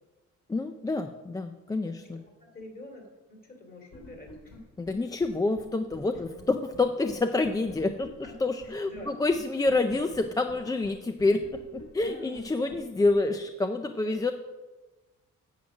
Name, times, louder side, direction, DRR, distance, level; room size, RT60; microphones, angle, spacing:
voice 1, 0.5-2.2 4.8-8.1 8.4-11.4 11.7-14.3, left 3 dB, 10° left, 7 dB, 0.3 m, -27 dB
voice 2, 2.4-4.6 5.0-5.1 8.6-9.1 12.0-12.8 14.0-14.2, left 1 dB, 30° left, 2 dB, 2.4 m, -47 dB
sound 1, 3.9-4.6 4.9-5.0 5.2-5.3 5.6-5.7 5.9-6.4 6.7-6.8 7.1-7.2 7.4-8.3 8.6-8.7 9.0-9.1 9.3-9.4 9.7-10.2 10.5-10.6 10.8-10.9 11.2-12.1 12.4-12.5 12.7-12.8 13.1-13.2, left 3 dB, 85° left, 3.0 m, -48 dB
9.6 x 7.5 x 6.2 m, 1.2 s
wide cardioid pair, 155°, 32 cm